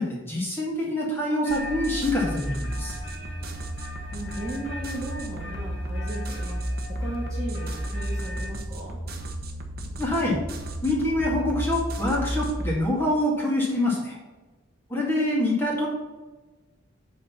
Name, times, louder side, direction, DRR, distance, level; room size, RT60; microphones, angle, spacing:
voice 1, 0.0-2.9 10.0-10.4 10.8-14.2 14.9-15.9, left 1 dB, 10° left, -4 dB, 2.1 m, -25 dB
sound 1, 1.4-8.5, left 1 dB, 60° left, 2.2 m, -42 dB
sound 2, 1.5-12.8, right 1 dB, 50° right, 1.1 m, -33 dB
voice 2, 3.8-6.6 6.9-9.0, right 1 dB, 15° right, -6 dB, 1.6 m, -36 dB
8.4 x 4.1 x 5.6 m, 1.2 s
head